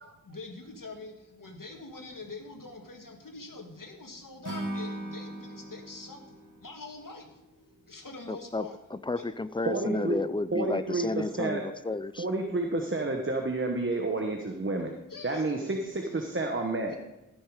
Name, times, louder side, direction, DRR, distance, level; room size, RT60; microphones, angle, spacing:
voice 1, 0.3-7.4 7.9-8.8 9.2-9.3 15.1-15.5 16.9-17.0, left 3 dB, 65° left, 3 dB, 1.9 m, -44 dB
Acoustic guitar / Strum, 4.4-7.7, right 1 dB, 60° right, 2.4 m, -39 dB
voice 2, 8.3-12.3, left 3 dB, 15° left, 15 dB, 0.4 m, -32 dB
voice 3, 9.6-10.2 10.5-11.6 12.2-14.9 15.2-17.0, right 2 dB, 35° right, 3 dB, 1.2 m, -30 dB
14.5 x 6.5 x 4.9 m, 0.94 s
wide cardioid pair, 55°, 35 cm